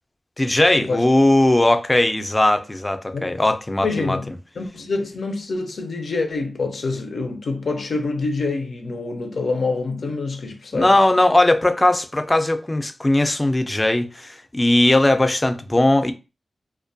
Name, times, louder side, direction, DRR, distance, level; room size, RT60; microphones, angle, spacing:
voice 1, 0.4-4.2 10.7-16.1, left 1 dB, 25° left, 0.4 m, -18 dB
voice 2, 3.8-10.9, left 3 dB, 85° left, 0.5 m, -26 dB
2.2 x 2.2 x 2.6 m
cardioid pair, 45°, 0 cm